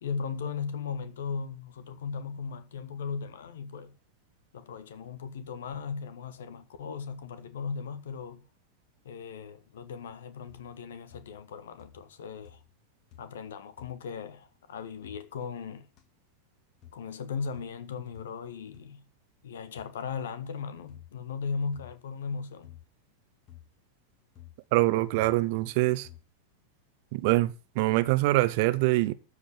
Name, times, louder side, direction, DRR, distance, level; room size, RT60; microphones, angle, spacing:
voice 1, 0.0-3.9 4.5-8.5 9.0-12.6 13.2-15.9 16.9-19.0 19.4-22.7, left 5 dB, 60° left, 1.5 m, -37 dB
sound 1, 10.5-10.8 11.1-11.5 11.8-12.2 12.4-12.8 13.1-13.4 13.8-14.0 15.0-15.2 16.0-16.1 16.8-17.0 17.5-17.7 18.1-18.3 18.7-18.8 19.8-19.9 20.9-21.1 21.7-22.0 22.6-22.9 23.5-23.7 24.4-24.6 25.2-25.4 26.0-26.3, left 11 dB, 40° left, 2.3 m, -52 dB
voice 2, 24.7-26.1 27.1-29.1, right 19 dB, 50° right, 1.0 m, -24 dB
13.0 x 5.1 x 8.6 m
figure-of-eight pair, 90°, 0 cm